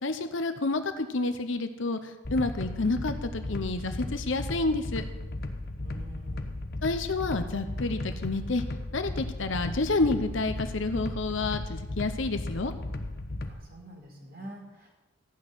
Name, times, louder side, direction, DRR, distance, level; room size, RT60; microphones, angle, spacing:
voice 1, 0.0-5.0 6.8-8.7 8.9-12.7, left 3 dB, 65° left, 8 dB, 0.9 m, -29 dB
sound 1, 2.2-13.5, left 2 dB, 45° left, 1.1 m, -35 dB
voice 2, 5.8-6.5 13.4-14.9, right 1 dB, 45° right, -1 dB, 4.4 m, -46 dB
15.0 x 6.4 x 9.7 m, 1.1 s
head